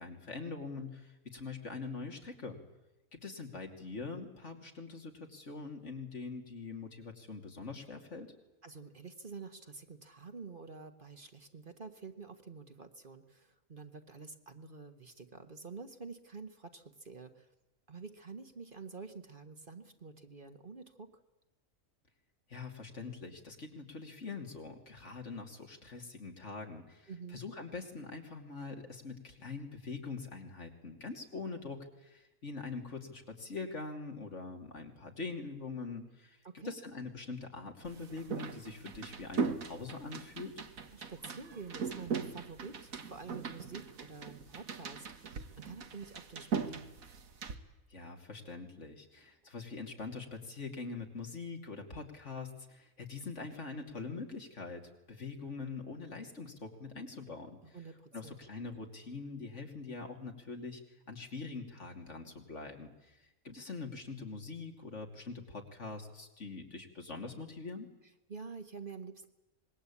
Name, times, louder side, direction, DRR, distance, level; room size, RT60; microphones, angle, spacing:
voice 1, 0.0-2.6 3.1-8.3 22.5-40.6 47.9-54.8 55.1-57.8 58.1-60.8 61.1-63.2 63.4-67.9, left 4 dB, 60° left, 3 dB, 3.1 m, -43 dB
voice 2, 8.6-17.5 17.9-21.1 27.1-27.4 36.4-36.8 40.9-46.8 57.7-58.4 68.3-69.3, right 4 dB, 40° right, 7 dB, 1.6 m, -48 dB
sound 1, 37.8-47.6, right 5 dB, 85° right, 1.9 m, -40 dB
26.0 x 21.5 x 8.5 m, 1.0 s
omnidirectional pair, 1.4 m